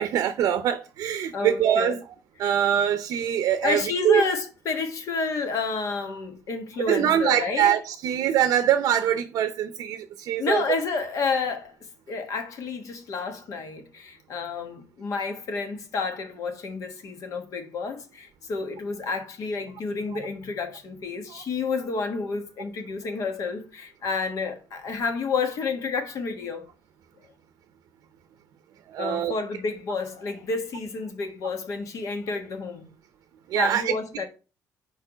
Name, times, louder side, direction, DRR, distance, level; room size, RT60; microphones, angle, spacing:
voice 1, 0.0-2.0 2.4-4.3 6.9-10.6 20.1-20.2 21.3-21.4 28.9-29.3 33.5-33.9, right 10 dB, 75° right, 0.6 m, -23 dB
voice 2, 1.3-2.0 3.6-7.7 10.4-11.7 12.1-26.6 29.0-32.9 33.5-34.3, left 4 dB, 60° left, 1.3 m, -30 dB
4.6 x 4.4 x 5.9 m
cardioid pair, 155°, 6 cm